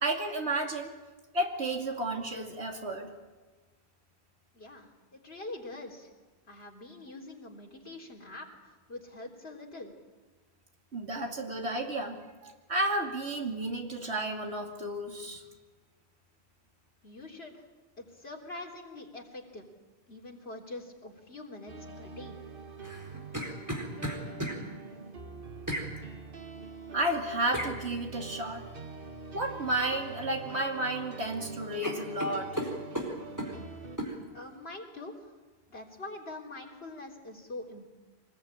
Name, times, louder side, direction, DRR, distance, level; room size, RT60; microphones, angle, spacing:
voice 1, 0.0-0.9 1.3-3.1 10.9-15.4 26.9-28.7 29.3-32.6, right 1 dB, 80° right, 2 dB, 3.0 m, -32 dB
voice 2, 4.5-6.1 6.5-9.9 17.0-17.6 18.0-19.7 20.1-22.4 34.3-35.3 35.7-37.9, left 2 dB, 70° left, 0 dB, 3.8 m, -44 dB
sound 1, 21.7-34.0, right 4 dB, 55° right, 1.7 m, -45 dB
sound 2, 22.8-24.6 25.7-25.9 27.5-27.7 29.7-30.0 30.4-31.1 31.4-31.5 31.8-33.5 34.0-34.1, equal, 15° right, 4.2 m, -35 dB
24.5 x 20.0 x 9.0 m, 1.3 s
omnidirectional pair, 1.1 m